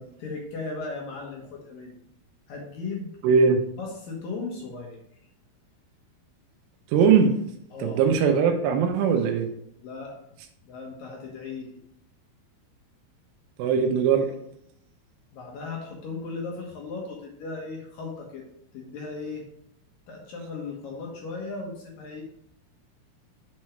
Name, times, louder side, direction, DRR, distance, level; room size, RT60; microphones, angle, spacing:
voice 1, 0.2-2.0 2.5-3.1 3.8-5.0 7.7-8.0 9.8-10.1 10.7-11.8 15.3-18.4 18.7-19.5 20.1-22.2, left 4 dB, 70° left, 0 dB, 2.2 m, -36 dB
voice 2, 3.2-3.6 6.9-7.4 7.8-9.5 13.6-14.3, right 6 dB, 80° right, 4 dB, 3.1 m, -20 dB
9.7 x 6.1 x 3.2 m, 0.73 s
omnidirectional pair, 5.9 m